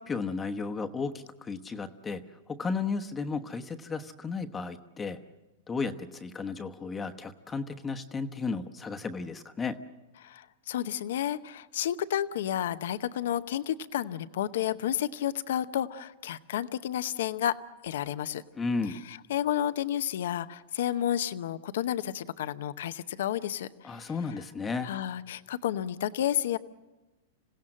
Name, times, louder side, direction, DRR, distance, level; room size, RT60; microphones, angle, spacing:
voice 1, 0.0-5.2 5.7-9.8 18.6-19.0 23.8-24.9, left 4 dB, 15° left, 7 dB, 1.1 m, -34 dB
voice 2, 10.2-17.6 17.8-18.4 19.1-24.1 24.8-26.6, left 11 dB, 75° left, 13 dB, 0.8 m, -31 dB
27.0 x 16.5 x 7.6 m, 1.1 s
hypercardioid pair, 130°, 0 cm